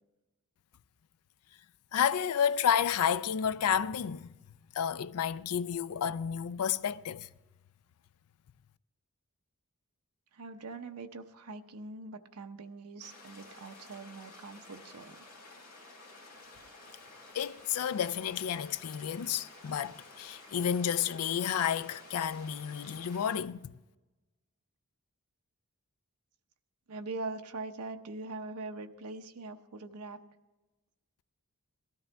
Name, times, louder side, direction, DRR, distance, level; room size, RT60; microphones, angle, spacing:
voice 1, 1.9-4.3 4.7-7.3 17.3-23.7, left 8 dB, 80° left, 0.4 m, -31 dB
voice 2, 10.3-15.2 26.9-30.2, right 3 dB, 85° right, 0.8 m, -42 dB
sound 1, 13.0-23.4, left 2 dB, 45° left, 4.3 m, -52 dB
17.5 x 13.0 x 3.4 m
head